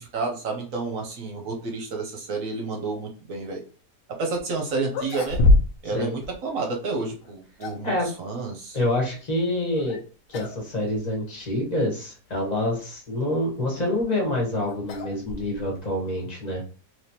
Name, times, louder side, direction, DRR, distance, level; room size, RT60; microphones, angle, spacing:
voice 1, 0.0-3.6 4.2-5.4 5.8-7.9 8.2-8.8, right 3 dB, 60° right, 1 dB, 1.0 m, -30 dB
sound 1, 4.4-4.5 4.9-6.0 6.2-6.3 7.2-7.9 9.7-10.0 10.3-10.6 10.9-11.0 11.8-11.9 13.7-15.8, left 2 dB, 75° left, 1.3 m, -25 dB
voice 2, 8.7-10.0 10.3-16.6, left 1 dB, 25° left, -2 dB, 1.1 m, -27 dB
3.5 x 3.1 x 2.8 m, 0.38 s
omnidirectional pair, 1.8 m